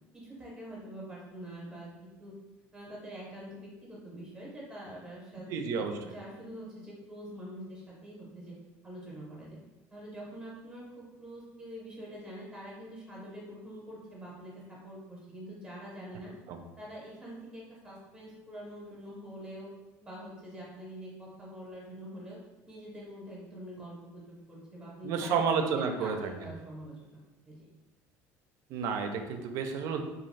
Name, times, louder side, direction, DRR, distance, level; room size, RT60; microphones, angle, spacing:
voice 1, 0.1-2.3 2.7-8.5 8.8-9.6 9.9-16.3 16.8-19.7 20.0-22.4 22.7-25.4 25.7-27.2 27.5-27.7, equal, 15° right, -5 dB, 0.7 m, -45 dB
voice 2, 5.5-6.0 16.5-16.6 25.0-26.3 28.7-30.0, right 5 dB, 60° right, 5 dB, 0.4 m, -30 dB
2.4 x 2.3 x 3.1 m, 1.1 s
cardioid pair, 135°, 6 cm